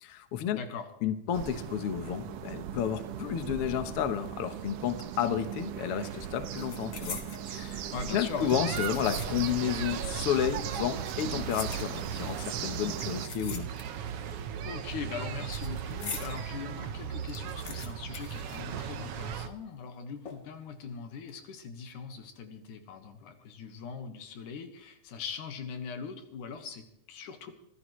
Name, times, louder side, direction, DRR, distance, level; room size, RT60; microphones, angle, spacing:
voice 1, 0.0-0.6 1.0-7.2 7.5-13.7, left 9 dB, 60° left, 9 dB, 1.6 m, -31 dB
voice 2, 0.5-0.9 7.9-8.5 14.6-27.5, left 6 dB, 80° left, 6 dB, 3.0 m, -41 dB
sound 1, 1.3-13.3, right 9 dB, 85° right, 2.6 m, -39 dB
sound 2, 5.5-5.8 6.1-7.5 8.2-9.6 9.9-10.0 10.9-12.3 13.0-14.2 14.4-16.4 16.8-16.9 17.1-19.2 19.5-19.6 20.3-20.7 21.1-21.3, left 5 dB, 40° left, 1.9 m, -44 dB
sound 3, 8.5-19.5, right 8 dB, 65° right, 1.5 m, -37 dB
24.5 x 15.0 x 3.2 m, 0.80 s
omnidirectional pair, 3.6 m